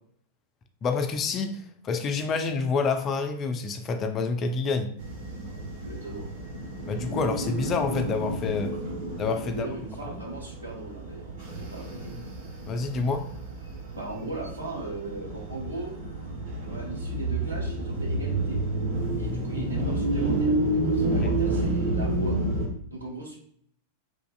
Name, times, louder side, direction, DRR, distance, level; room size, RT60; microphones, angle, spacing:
voice 1, 0.8-4.9 6.9-8.7 9.2-9.7 12.7-13.3 21.2-21.3, left 4 dB, 30° left, 7 dB, 0.3 m, -28 dB
sound 1, 5.0-22.7, right 2 dB, 50° right, 0.9 m, -30 dB
voice 2, 5.8-6.3 9.4-12.3 13.9-15.9 16.7-18.6 19.1-22.4 22.9-23.4, right 2 dB, 80° right, -2 dB, 1.0 m, -38 dB
3.1 x 2.4 x 2.3 m, 0.63 s
figure-of-eight pair, 90°, 0 cm